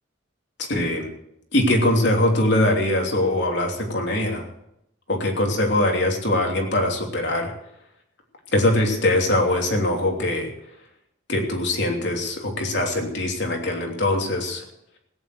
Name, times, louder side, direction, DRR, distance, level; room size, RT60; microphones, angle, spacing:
voice 1, 0.6-1.1 1.5-4.5 5.1-7.5 8.5-10.5 11.3-14.6, left 1 dB, 65° left, 1 dB, 3.0 m, -22 dB
17.0 x 9.3 x 7.9 m, 0.78 s
head